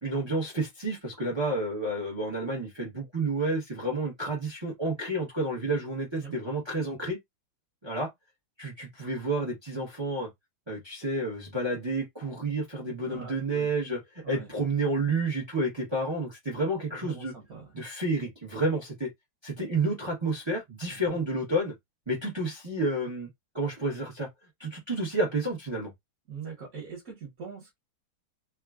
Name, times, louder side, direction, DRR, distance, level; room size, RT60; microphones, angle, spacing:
voice 1, 0.0-7.2 7.8-8.1 8.6-10.3 10.7-17.3 17.7-19.1 19.4-21.7 22.1-23.3 23.5-24.3 24.6-25.9, right 2 dB, 30° right, 0.5 m, -30 dB
voice 2, 13.0-13.7 14.2-14.5 16.9-17.7 20.9-21.2 26.3-27.8, right 5 dB, 50° right, 1.3 m, -43 dB
3.5 x 2.3 x 2.3 m
omnidirectional pair, 2.1 m